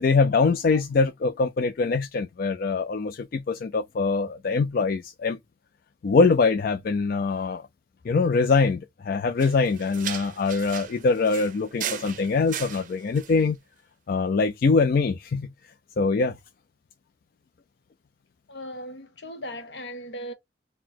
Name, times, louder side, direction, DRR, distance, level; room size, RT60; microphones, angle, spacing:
voice 1, 0.0-5.4 6.0-7.7 8.0-13.6 14.1-15.5 16.0-16.4, left 4 dB, 50° left, 0.4 m, -23 dB
sound 1, 9.4-13.4, right 9 dB, 45° right, 0.5 m, -37 dB
voice 2, 18.5-20.3, equal, 75° left, 1.1 m, -37 dB
3.9 x 2.1 x 4.3 m
head